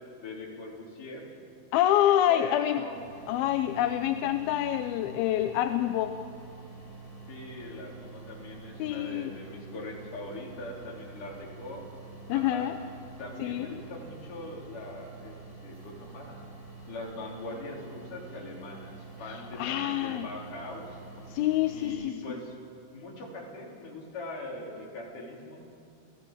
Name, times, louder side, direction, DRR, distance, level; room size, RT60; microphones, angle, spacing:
voice 1, 0.2-1.3 2.3-3.0 7.3-11.9 12.3-12.7 13.2-15.4 15.6-16.4 16.9-21.0 21.7-22.6 22.9-25.6, left 2 dB, 60° left, -2 dB, 5.4 m, -41 dB
voice 2, 1.7-2.8 3.3-6.2 8.8-9.3 12.3-12.7 13.4-13.7 19.3-20.3 21.3-22.1, left 12 dB, 85° left, 8 dB, 2.6 m, -27 dB
sound 1, 2.9-21.9, right 3 dB, 75° right, 9.6 m, -47 dB
29.0 x 18.0 x 7.5 m, 2.5 s
omnidirectional pair, 4.3 m